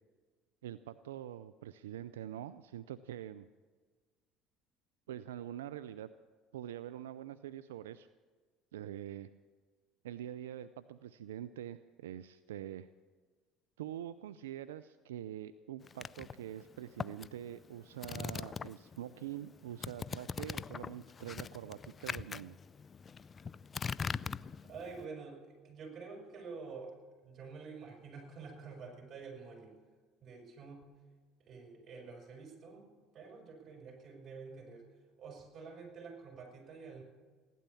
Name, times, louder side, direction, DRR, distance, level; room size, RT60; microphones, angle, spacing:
voice 1, 0.6-3.5 5.1-6.1 6.5-8.1 8.7-9.3 10.0-12.9 13.8-22.6, right 11 dB, 90° right, 13 dB, 0.4 m, -45 dB
sound 1, 15.9-19.0 19.3-25.0, left 5 dB, 35° left, 0.4 m, -42 dB
voice 2, 24.6-27.0 27.2-29.7 30.2-30.8 31.5-34.9 35.2-37.0, right 4 dB, 50° right, 2 dB, 6.2 m, -48 dB
16.5 x 12.0 x 7.0 m, 1.5 s
hypercardioid pair, 75°, 0 cm